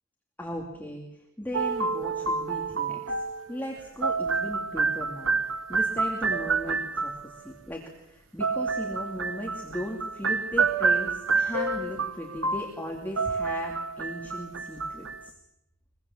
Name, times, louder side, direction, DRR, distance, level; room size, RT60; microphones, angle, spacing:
voice 1, 0.4-15.3, equal, 10° left, -1 dB, 2.5 m, -37 dB
sound 1, 1.5-7.4 8.4-15.3, right 4 dB, 60° right, 1.3 m, -28 dB
23.5 x 22.5 x 7.3 m, 0.88 s
head